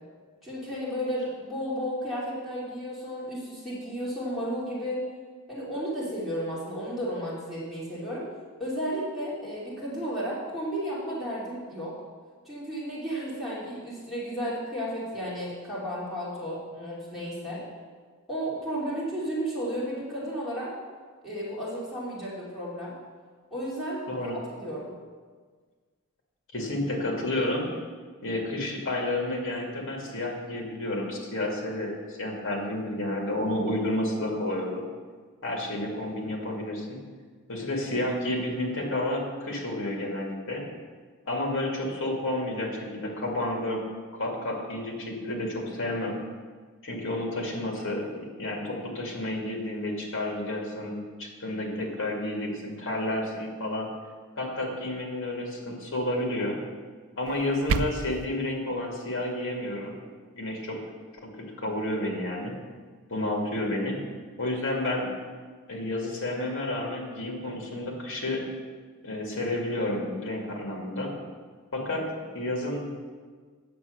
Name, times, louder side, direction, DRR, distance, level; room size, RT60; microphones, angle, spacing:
voice 1, 0.4-5.0 5.5-8.3 8.6-11.9 12.4-17.6 18.3-20.7 21.2-22.9 23.5-24.3 24.6-24.9, equal, ahead, -9 dB, 2.9 m, -33 dB
voice 2, 26.5-27.7 28.2-34.8 35.4-37.0 37.5-40.6 41.3-43.8 44.1-46.2 46.8-53.9 54.4-56.6 57.2-59.9 60.3-60.8 61.6-62.5 63.1-64.0 64.4-65.1 65.7-68.4 69.0-71.1 71.7-72.1 72.3-72.9, left 1 dB, 65° left, 0 dB, 2.3 m, -30 dB
sound 1, 57.3-58.3, right 5 dB, 70° right, 0.4 m, -30 dB
9.4 x 6.8 x 6.5 m, 1.5 s
head